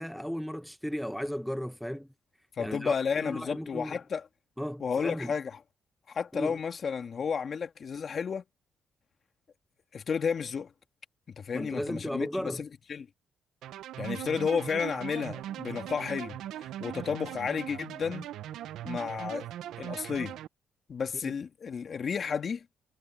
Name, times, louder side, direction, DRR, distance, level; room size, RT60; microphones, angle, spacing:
voice 1, 0.0-2.1 2.6-4.0 4.6-5.3 6.3-6.6 11.5-12.6 21.2-21.3, equal, ahead, 0.8 m, -35 dB
voice 2, 2.5-4.3 4.8-5.6 6.1-8.4 9.9-10.7 11.3-13.1 14.0-18.3 18.8-19.5 19.8-20.4 20.9-22.7, left 6 dB, 45° left, 2.1 m, -32 dB
sound 1, 13.6-20.5, right 12 dB, 80° right, 0.7 m, -40 dB
cardioid pair, 90°, 0 cm